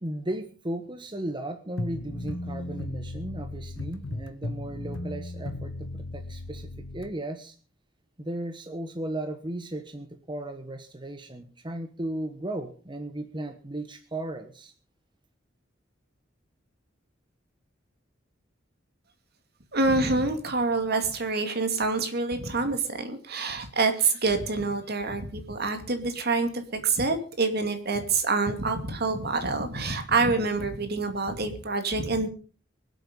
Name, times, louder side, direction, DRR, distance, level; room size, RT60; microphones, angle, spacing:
voice 1, 0.0-7.6 8.2-14.7, right 1 dB, 25° right, 7 dB, 1.2 m, -36 dB
sound 1, 1.8-7.1, left 2 dB, 90° left, 1.3 m, -36 dB
voice 2, 19.7-32.3, right 3 dB, 55° right, 7 dB, 2.5 m, -26 dB
24.0 x 8.2 x 5.5 m, 0.39 s
head